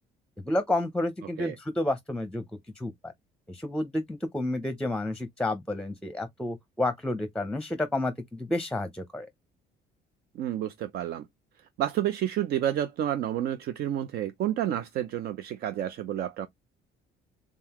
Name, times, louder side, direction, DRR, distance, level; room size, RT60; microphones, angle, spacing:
voice 1, 0.4-2.4 2.8-3.1 3.5-9.3, left 1 dB, 5° left, 0.7 m, -30 dB
voice 2, 10.3-11.3 11.8-16.5, right 11 dB, 70° right, 0.6 m, -30 dB
3.8 x 3.6 x 2.9 m
cardioid pair, 110°, 17 cm